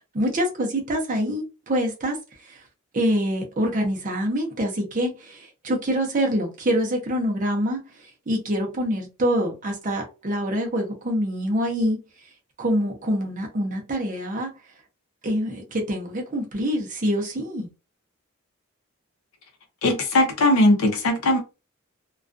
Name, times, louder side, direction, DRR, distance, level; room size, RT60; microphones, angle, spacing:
voice 1, 0.1-2.2 2.4-2.6 2.9-7.8 8.3-12.0 12.6-14.5 15.2-17.7, equal, 35° right, 0.6 m, -25 dB
voice 2, 19.8-21.4, left 1 dB, 75° left, 0.6 m, -19 dB
2.3 x 2.3 x 2.4 m
head